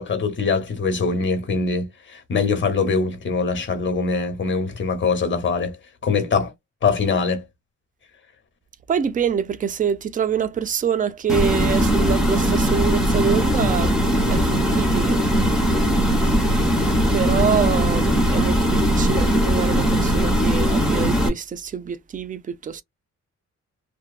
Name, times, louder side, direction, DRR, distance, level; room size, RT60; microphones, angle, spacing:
voice 1, 0.0-5.8 6.0-6.5 6.8-7.4, left 4 dB, 40° left, 0.8 m, -23 dB
voice 2, 8.9-14.0 14.3-15.2 17.1-22.8, right 7 dB, 30° right, 0.4 m, -25 dB
sound 1, 11.3-21.3, equal, ahead, 0.8 m, -19 dB
2.7 x 2.2 x 2.2 m
wide cardioid pair, 130°, 29 cm